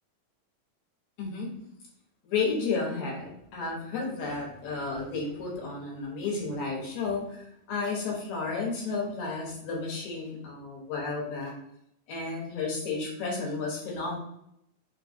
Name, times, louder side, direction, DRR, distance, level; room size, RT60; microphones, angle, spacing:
voice 1, 1.2-1.5 2.2-11.5 12.1-14.2, left 4 dB, 65° left, -3 dB, 2.2 m, -32 dB
5.2 x 2.3 x 2.6 m, 0.75 s
omnidirectional pair, 3.7 m